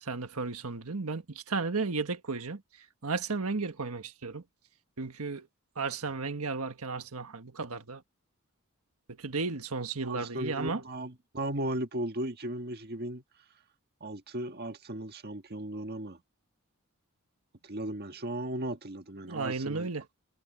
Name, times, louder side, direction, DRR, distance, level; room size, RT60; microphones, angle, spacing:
voice 1, 0.0-2.6 3.0-4.4 5.0-5.5 5.7-8.0 9.1-10.8 19.3-20.1, right 4 dB, 80° right, 1.5 m, -34 dB
voice 2, 10.0-13.2 14.0-16.2 17.6-19.9, right 1 dB, 45° right, 1.7 m, -36 dB
head